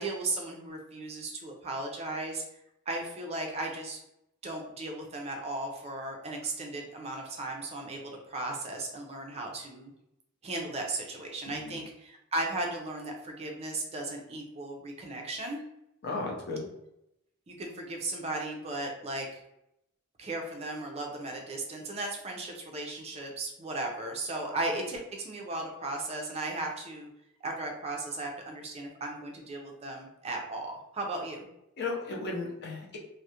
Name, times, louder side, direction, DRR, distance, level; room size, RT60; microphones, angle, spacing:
voice 1, 0.0-2.4 2.9-4.0 4.4-9.9 10.4-15.6 17.5-19.4 20.2-27.1 27.4-31.5, right 2 dB, 30° right, 1 dB, 0.4 m, -36 dB
voice 2, 11.5-11.8 16.0-16.7 31.8-33.0, left 3 dB, 50° left, -1 dB, 0.6 m, -35 dB
2.3 x 2.0 x 2.7 m, 0.82 s
head